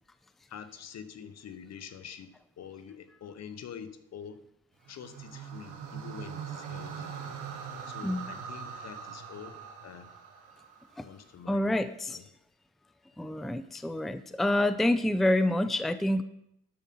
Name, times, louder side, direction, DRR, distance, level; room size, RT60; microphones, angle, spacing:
voice 1, 0.5-4.4 4.9-7.1 7.5-7.6 7.9-10.1 11.0-11.7 12.1-12.2, left 8 dB, 60° left, 11 dB, 1.0 m, -46 dB
sound 1, 4.8-11.2, right 7 dB, 85° right, 1.5 m, -42 dB
voice 2, 11.5-12.2 13.2-16.2, left 1 dB, ahead, 11 dB, 0.5 m, -27 dB
12.5 x 5.8 x 5.4 m, 0.77 s
cardioid pair, 90°, 30 cm